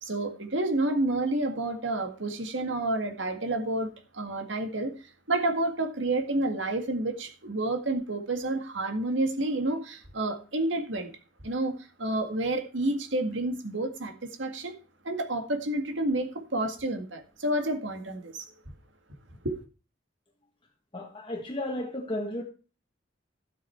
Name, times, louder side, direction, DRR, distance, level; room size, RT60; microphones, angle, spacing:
voice 1, 0.0-4.9 5.3-11.1 11.4-14.7 15.0-18.4 19.4-19.6, right 2 dB, 75° right, 1.9 m, -29 dB
voice 2, 20.9-22.4, left 1 dB, 25° left, 1.6 m, -33 dB
12.5 x 7.9 x 4.4 m
head